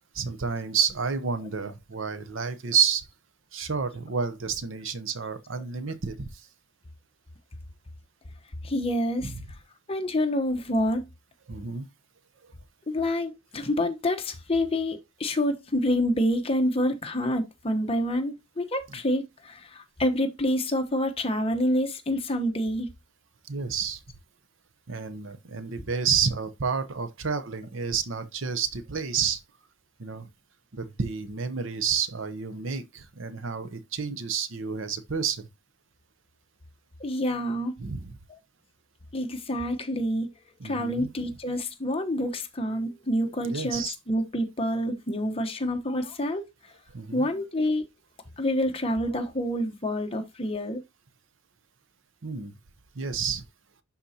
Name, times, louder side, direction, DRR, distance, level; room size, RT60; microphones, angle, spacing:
voice 1, 0.1-3.0 3.5-6.3 9.2-9.3 11.5-11.9 18.9-19.0 23.5-24.0 24.9-29.4 30.0-30.3 30.7-35.4 37.8-38.1 40.6-41.1 43.5-43.9 46.9-47.3 52.2-52.5 52.9-53.4, right 6 dB, 65° right, 0.8 m, -30 dB
voice 2, 8.6-9.3 9.9-11.1 12.9-22.9 37.0-37.8 39.1-40.3 40.6-46.5 47.1-47.8 48.4-50.8, left 1 dB, 30° left, 1.0 m, -27 dB
11.5 x 4.3 x 2.8 m
head